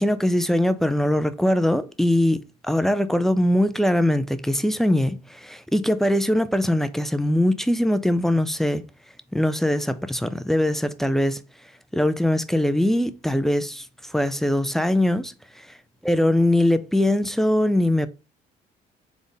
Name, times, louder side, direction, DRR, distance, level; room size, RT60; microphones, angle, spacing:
voice 1, 0.0-8.8 9.3-11.4 11.9-15.7 16.0-18.1, left 1 dB, ahead, 0.4 m, -22 dB
3.6 x 3.6 x 3.9 m
cardioid pair, 110°, 17 cm